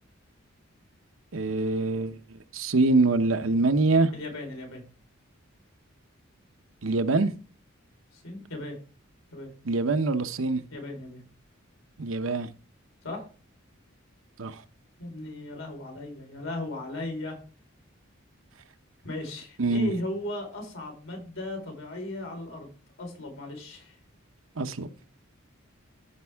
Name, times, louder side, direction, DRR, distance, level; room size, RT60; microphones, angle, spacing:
voice 1, 1.3-4.1 6.8-7.3 9.7-10.6 12.0-12.5 14.4-14.6 19.6-19.9 24.6-24.9, right 3 dB, 80° right, 0.9 m, -24 dB
voice 2, 4.1-4.8 8.1-8.8 9.3-9.5 10.7-11.2 13.0-13.2 15.0-17.4 19.0-22.7 23.0-24.0, left 1 dB, 85° left, 4.3 m, -36 dB
14.0 x 5.3 x 3.5 m
head